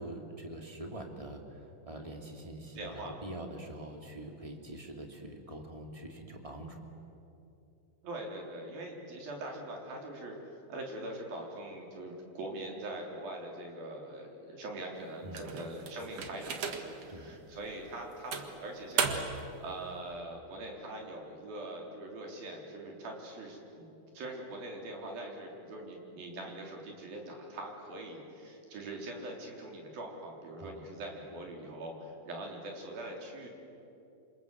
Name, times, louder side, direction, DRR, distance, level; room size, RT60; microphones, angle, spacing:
voice 1, 0.0-6.8 15.2-15.5 17.1-17.3 30.6-30.9, right 1 dB, 10° right, 2 dB, 2.1 m, -44 dB
voice 2, 2.8-3.1 8.0-10.4 10.7-19.2 19.6-23.9 24.1-33.5, right 1 dB, 70° right, 1 dB, 5.6 m, -42 dB
sound 1, 15.3-17.1 17.6-17.7 18.3-19.5, right 6 dB, 50° right, 2.4 m, -35 dB
28.0 x 26.0 x 8.0 m, 2.9 s
omnidirectional pair, 4.4 m